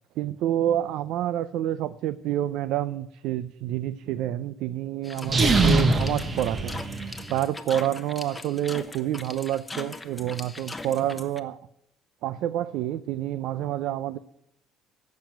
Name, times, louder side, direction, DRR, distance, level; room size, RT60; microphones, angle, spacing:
voice 1, 0.2-11.6 12.2-14.2, right 12 dB, 70° right, 15 dB, 0.5 m, -28 dB
sound 1, 5.0-11.4, left 2 dB, 10° left, 0.9 m, -40 dB
sound 2, 5.2-7.4, right 3 dB, 30° right, 1.1 m, -23 dB
12.0 x 7.5 x 9.0 m, 0.77 s
cardioid pair, 120°, 0 cm